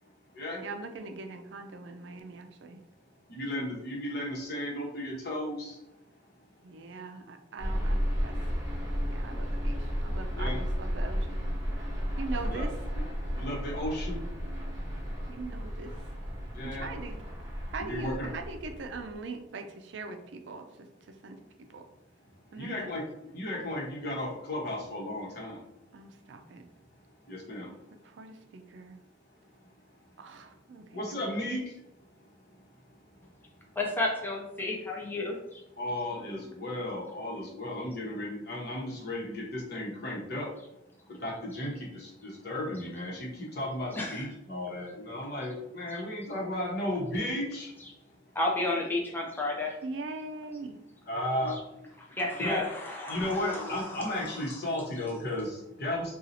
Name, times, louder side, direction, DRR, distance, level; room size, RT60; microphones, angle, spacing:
voice 1, 0.6-2.8 6.6-8.5 8.8-11.4 12.2-12.8 15.3-16.1 16.6-17.1 17.7-21.4 21.7-21.8 22.5-22.9 25.9-26.7 28.2-29.0 30.2-31.5 49.8-50.8, right 3 dB, 65° right, 6 dB, 0.4 m, -41 dB
voice 2, 3.3-5.8 10.3-10.6 12.5-12.6 13.3-14.2 16.5-16.9 17.8-18.3 22.5-23.0 23.3-25.6 27.3-27.7 30.9-31.6 35.8-40.5 41.2-47.7 51.1-51.5 52.4-52.6 53.1-56.1, left 1 dB, 55° left, -3 dB, 1.1 m, -34 dB
sound 1, 7.6-19.2, equal, 20° right, 1.1 m, -33 dB
voice 3, 33.8-35.4 43.9-44.3 48.4-49.7 52.1-54.3, left 2 dB, 10° left, -2 dB, 0.4 m, -32 dB
2.7 x 2.4 x 4.0 m, 0.88 s
head